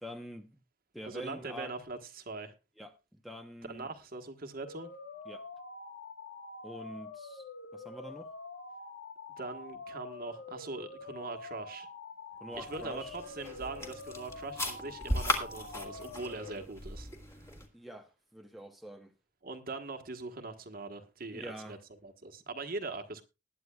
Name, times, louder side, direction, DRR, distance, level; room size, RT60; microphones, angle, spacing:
voice 1, 0.0-0.6 0.9-1.7 2.8-3.9 5.3-5.4 6.6-7.4 7.7-8.3 12.4-13.2 17.7-19.1 21.3-21.8, equal, ahead, 0.9 m, -45 dB
voice 2, 1.0-2.5 3.7-4.9 9.4-11.9 12.6-17.5 19.4-21.8 22.0-23.2, right 3 dB, 55° right, 1.4 m, -42 dB
sound 1, 4.7-16.6, left 3 dB, 85° left, 1.6 m, -46 dB
sound 2, 12.5-17.7, left 1 dB, 15° left, 1.9 m, -37 dB
20.0 x 9.5 x 2.3 m
head